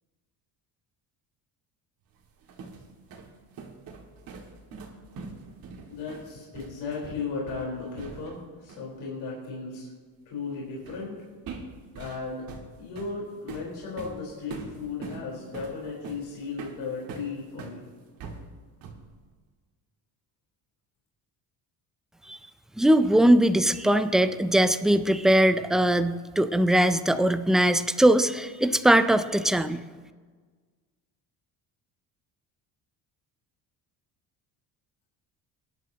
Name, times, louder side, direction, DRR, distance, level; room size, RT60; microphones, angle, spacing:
sound 1, 2.2-8.4 8.7-8.9 10.9-11.1 11.5-17.8 18.2-19.1, right 4 dB, 60° right, 2.0 m, -42 dB
voice 1, 5.9-9.9 10.3-11.1 12.0-12.5 12.8-17.8, left 4 dB, 75° left, -3 dB, 4.1 m, -35 dB
voice 2, 22.8-29.8, right 1 dB, ahead, 9 dB, 0.3 m, -21 dB
23.5 x 11.0 x 2.8 m, 1.5 s
cardioid pair, 145°, 40 cm